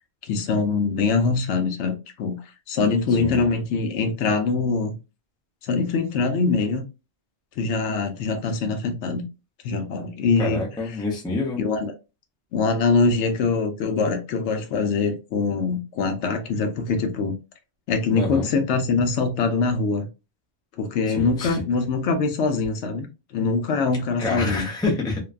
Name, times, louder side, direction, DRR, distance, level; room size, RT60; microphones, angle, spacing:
voice 1, 0.2-2.4 2.7-4.9 5.6-6.8 7.6-9.2 9.6-11.0 11.6-11.9 12.5-17.4 17.9-20.1 20.8-24.7, left 4 dB, 75° left, 0.9 m, -23 dB
voice 2, 10.4-11.6 18.2-18.5 21.1-21.6 24.2-25.2, left 2 dB, 5° left, 0.3 m, -27 dB
2.6 x 2.2 x 2.3 m
omnidirectional pair, 1.2 m